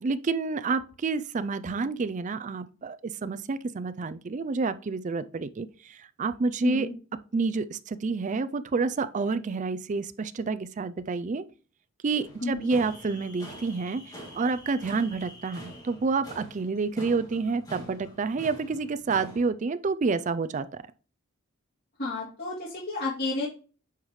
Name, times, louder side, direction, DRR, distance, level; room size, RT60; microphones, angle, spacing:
voice 1, 0.0-6.9 7.3-11.4 12.0-14.0 14.3-20.7, right 4 dB, 35° right, 0.4 m, -29 dB
sound 1, 12.2-19.5, equal, 20° left, 2.3 m, -46 dB
voice 2, 22.0-23.5, left 3 dB, 50° left, 2.8 m, -31 dB
9.2 x 4.9 x 3.1 m
head